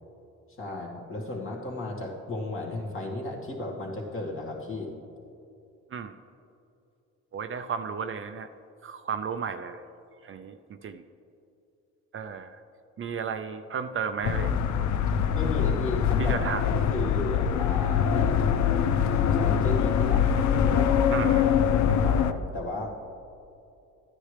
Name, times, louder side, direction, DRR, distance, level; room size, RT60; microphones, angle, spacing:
voice 1, 0.6-4.9 15.3-18.4 19.3-20.3 20.6-21.3 21.6-22.9, left 2 dB, 45° left, -2 dB, 2.1 m, -34 dB
voice 2, 7.3-8.5 8.8-9.8 10.2-11.0 12.1-12.6 13.0-14.6 16.2-16.6 21.1-21.5, right 6 dB, 45° right, 8 dB, 0.5 m, -33 dB
sound 1, 14.2-22.3, left 8 dB, 70° left, 0.5 m, -24 dB
13.5 x 9.7 x 3.3 m, 2.7 s
cardioid pair, 90°, 30 cm